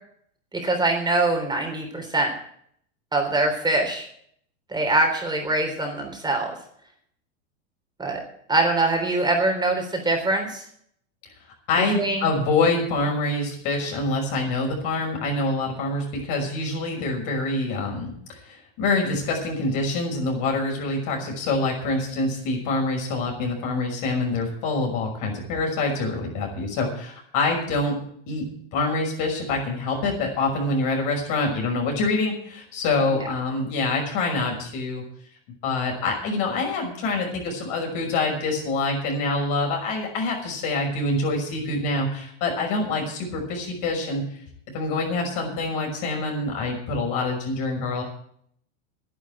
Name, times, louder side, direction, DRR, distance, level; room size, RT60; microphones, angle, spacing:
voice 1, 0.5-2.3 3.1-4.1 4.7-6.5 8.0-8.2 8.5-10.6 11.9-12.3 33.2-33.3, right 2 dB, 10° right, 2 dB, 3.5 m, -23 dB
voice 2, 11.7-18.1 18.5-28.0 28.3-28.4 28.7-35.0 35.6-44.2 44.7-48.0, left 3 dB, 50° left, 1 dB, 6.0 m, -25 dB
10.5 x 10.0 x 8.6 m, 0.65 s
hypercardioid pair, 110°, 39 cm